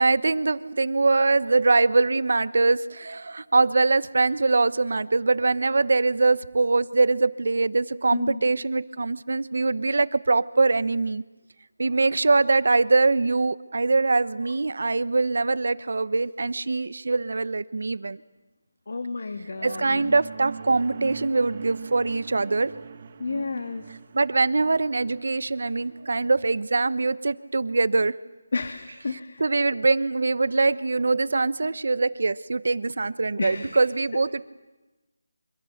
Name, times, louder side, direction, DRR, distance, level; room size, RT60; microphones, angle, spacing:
voice 1, 0.0-11.2 11.8-18.2 19.6-22.7 24.1-28.2 28.9-34.4, right 3 dB, 65° right, 15 dB, 1.1 m, -23 dB
voice 2, 18.9-20.1 23.2-23.9 28.5-29.5 33.4-33.8 34.1-34.2, left 3 dB, 65° left, 7 dB, 1.9 m, -31 dB
sound 1, 19.4-26.1, right 6 dB, 40° right, 1.4 m, -41 dB
26.5 x 25.5 x 6.7 m, 1.1 s
figure-of-eight pair, 165°, 0 cm